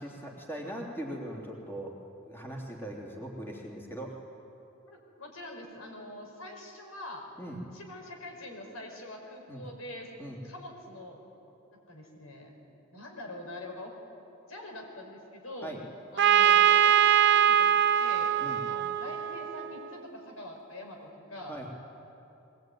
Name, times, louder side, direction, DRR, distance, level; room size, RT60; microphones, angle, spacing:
voice 1, 0.0-2.0 2.3-4.2 7.4-7.6 9.5-9.6 10.2-10.4 15.6-15.8 18.4-18.6 21.5-21.7, right 1 dB, 10° left, -2 dB, 3.1 m, -40 dB
voice 2, 4.9-7.3 7.7-10.1 10.4-11.2 11.7-12.6 12.9-13.9 14.5-15.7 16.1-18.3 18.7-21.5, left 1 dB, 90° left, 2 dB, 5.0 m, -44 dB
Trumpet, 16.2-19.9, right 9 dB, 55° right, 0.6 m, -23 dB
22.0 x 20.0 x 9.3 m, 2.9 s
head